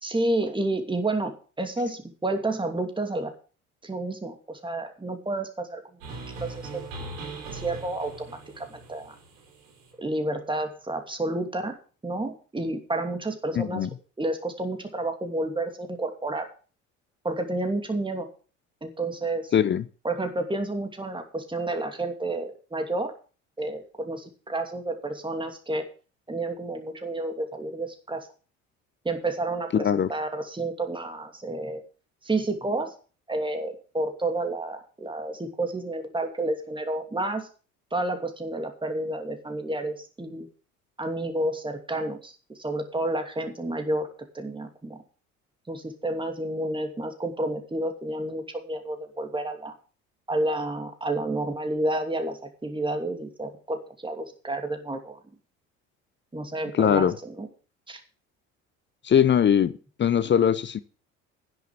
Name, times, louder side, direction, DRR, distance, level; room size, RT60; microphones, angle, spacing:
voice 1, 0.0-3.3 3.8-6.0 6.4-6.8 7.4-9.1 10.0-11.7 12.0-13.9 14.2-16.5 17.2-18.3 18.8-19.5 20.0-23.1 23.6-25.8 26.3-28.3 29.0-31.8 32.2-32.9 33.3-37.5 37.9-40.5 41.0-44.1 44.3-45.0 45.7-49.7 50.3-55.2 56.3-57.5 57.9-58.0, right 2 dB, 10° right, 2.7 m, -30 dB
sound 1, 6.0-9.9, right 2 dB, 75° right, 3.8 m, -40 dB
voice 2, 13.5-13.9 19.5-19.8 29.7-30.1 56.7-57.1 59.0-60.8, left 8 dB, 30° left, 0.7 m, -21 dB
10.0 x 7.0 x 7.5 m
figure-of-eight pair, 60°, 39 cm